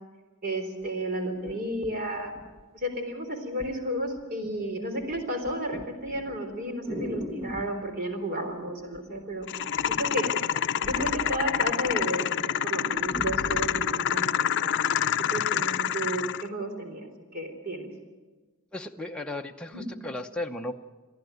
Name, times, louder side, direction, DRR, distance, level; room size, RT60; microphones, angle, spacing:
voice 1, 0.4-2.3 2.7-9.5 9.9-10.3 10.8-14.7 15.2-17.9 19.7-19.8, right 1 dB, 45° right, 5 dB, 3.7 m, -32 dB
sound 1, 0.8-0.9 1.5-2.9 3.6-3.8 4.2-4.6 4.9-7.8 8.9-9.4 9.7-12.0 12.4-12.5 12.8-13.9 14.6-14.7, equal, 25° right, 1.7 m, -39 dB
sound 2, 9.5-16.5, left 9 dB, 55° left, 0.6 m, -27 dB
voice 2, 18.7-20.7, left 2 dB, 5° left, 2 dB, 0.8 m, -35 dB
23.0 x 15.0 x 9.3 m, 1.3 s
head